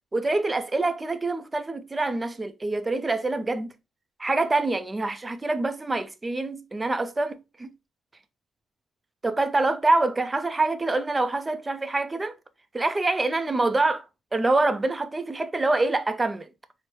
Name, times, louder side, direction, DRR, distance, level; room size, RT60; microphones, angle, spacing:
voice 1, 0.1-3.7 4.2-7.7 9.2-12.3 12.7-14.0 14.3-16.5, right 2 dB, 20° right, 0.4 m, -25 dB
4.4 x 2.0 x 3.0 m
cardioid pair, 90°, 0 cm